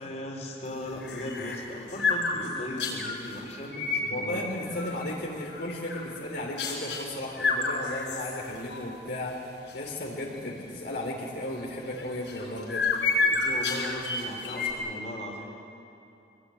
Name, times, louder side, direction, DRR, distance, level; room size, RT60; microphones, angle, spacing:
voice 1, 0.0-4.4 13.0-15.5, left 1 dB, 40° left, 0 dB, 4.3 m, -38 dB
sound 1, 0.7-3.2 3.6-4.1 4.5-5.1 5.5-6.2 6.6-7.1 7.4-8.8 9.2-9.3 9.7-9.9 10.4-10.6 12.0-14.7, left 4 dB, 85° left, 7.8 m, -30 dB
voice 2, 4.1-12.9, left 1 dB, 60° left, -1 dB, 3.6 m, -35 dB
26.0 x 21.0 x 10.0 m, 2.8 s
head